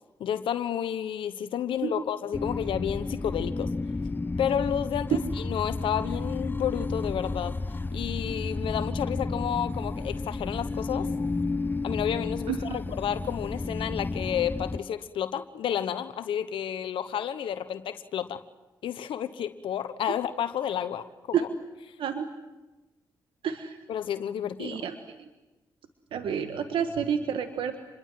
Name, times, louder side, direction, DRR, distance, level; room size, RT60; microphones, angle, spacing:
voice 1, 0.2-3.7 4.4-7.5 7.9-11.1 11.8-18.4 18.8-21.5 23.9-24.8, left 9 dB, 75° left, 12 dB, 1.1 m, -31 dB
sound 1, 2.3-14.8, left 3 dB, 20° left, 0.8 m, -32 dB
voice 2, 12.5-12.8 21.3-21.4 22.0-22.3 23.4-23.8 24.6-25.3 26.1-27.8, right 8 dB, 75° right, 7 dB, 1.6 m, -30 dB
28.0 x 22.0 x 7.7 m, 1.1 s
supercardioid pair, 45°, 9 cm